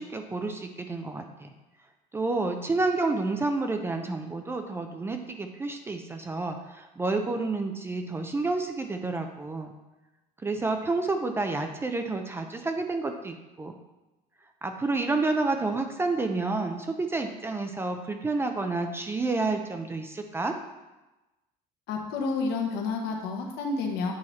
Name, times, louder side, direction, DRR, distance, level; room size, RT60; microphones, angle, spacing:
voice 1, 0.0-1.5 2.1-9.7 10.4-13.7 14.6-20.6, right 3 dB, 15° right, 5 dB, 0.4 m, -29 dB
voice 2, 21.9-24.1, left 4 dB, 75° left, 2 dB, 1.2 m, -30 dB
8.6 x 3.0 x 4.2 m, 1.0 s
cardioid pair, 145°, 17 cm